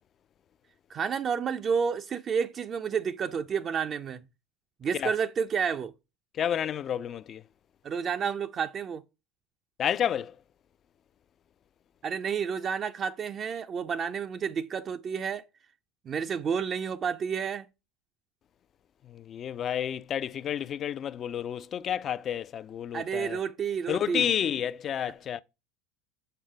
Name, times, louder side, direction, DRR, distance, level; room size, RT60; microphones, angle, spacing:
voice 1, 0.9-4.2 4.8-5.9 7.8-9.0 12.0-15.5 16.1-17.7 22.9-24.3, right 6 dB, 40° right, 0.6 m, -30 dB
voice 2, 6.3-7.4 9.8-10.3 19.0-23.4 23.9-25.4, left 9 dB, 40° left, 0.5 m, -30 dB
6.8 x 5.5 x 4.8 m
hypercardioid pair, 75°, 0 cm